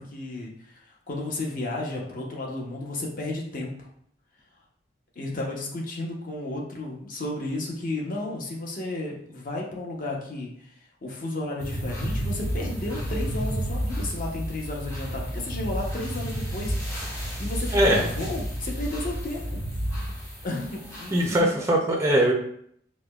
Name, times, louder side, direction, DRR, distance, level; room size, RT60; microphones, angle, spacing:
voice 1, 0.0-3.9 5.2-10.7 11.0-16.9 17.4-19.6 20.4-21.6, left 2 dB, 50° left, -1 dB, 0.7 m, -33 dB
sound 1, 11.6-21.4, equal, 15° left, 0.9 m, -31 dB
voice 2, 17.7-18.0 21.1-22.3, right 1 dB, 15° right, 0 dB, 0.4 m, -21 dB
4.9 x 2.1 x 2.3 m, 0.66 s
head